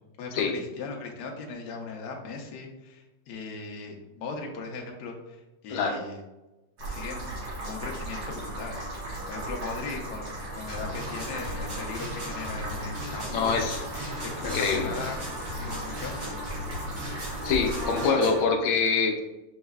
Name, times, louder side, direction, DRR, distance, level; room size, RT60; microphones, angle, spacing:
voice 1, 0.2-6.2 6.9-8.8 9.3-13.9 14.2-16.4 18.0-18.3, left 4 dB, 65° left, 1 dB, 1.1 m, -39 dB
sound 1, 6.8-18.1, right 1 dB, 90° right, 2.3 m, -37 dB
sound 2, 10.7-18.4, left 1 dB, 65° right, 2.2 m, -37 dB
voice 2, 13.3-13.8 14.4-14.9 17.4-19.2, left 5 dB, 85° left, 3 dB, 1.4 m, -25 dB
6.3 x 3.2 x 2.2 m, 1.0 s
omnidirectional pair, 2.2 m